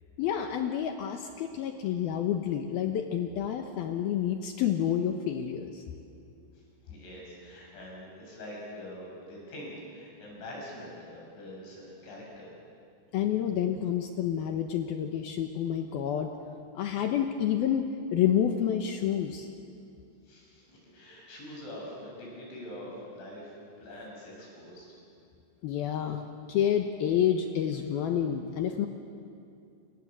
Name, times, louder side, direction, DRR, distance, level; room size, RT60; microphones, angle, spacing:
voice 1, 0.2-5.8 13.1-16.3 16.8-19.5 25.6-26.2 26.5-28.9, left 9 dB, 70° left, 5 dB, 2.6 m, -29 dB
voice 2, 6.5-12.5 20.2-24.9, left 1 dB, 90° left, -3 dB, 9.8 m, -44 dB
29.5 x 26.5 x 7.6 m, 2.5 s
omnidirectional pair, 5.2 m